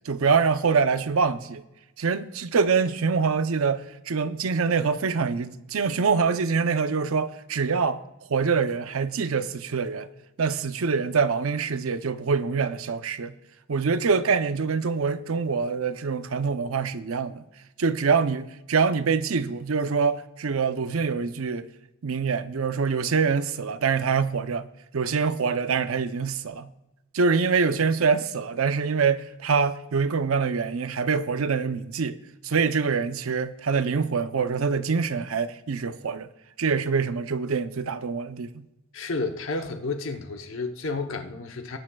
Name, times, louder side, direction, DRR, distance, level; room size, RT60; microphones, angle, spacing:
voice 1, 0.1-1.6 2.0-8.0 8.3-10.1 10.4-13.3 13.7-17.4 17.8-21.7 22.0-24.7 24.9-26.7 27.1-32.2 32.4-36.3 36.6-38.7, right 5 dB, 80° right, 0.6 m, -25 dB
voice 2, 38.9-41.8, left 3 dB, 65° left, 0.9 m, -31 dB
19.5 x 9.9 x 2.3 m
head